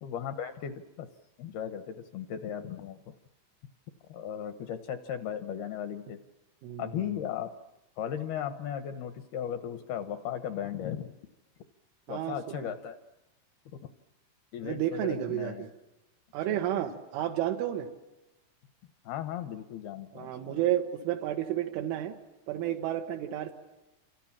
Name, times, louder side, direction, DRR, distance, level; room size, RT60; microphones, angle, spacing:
voice 1, 0.0-1.1 1.4-3.0 4.1-6.2 6.8-7.5 8.0-11.2 12.1-13.0 13.7-13.8 14.5-15.6 16.5-16.6 19.1-20.5, left 9 dB, 75° left, 10 dB, 2.5 m, -36 dB
voice 2, 6.6-7.1 12.1-12.7 14.6-15.7 16.3-17.9 20.1-22.2 22.5-23.5, right 12 dB, 80° right, 2 dB, 3.9 m, -31 dB
29.5 x 26.5 x 7.3 m, 1.0 s
omnidirectional pair, 5.6 m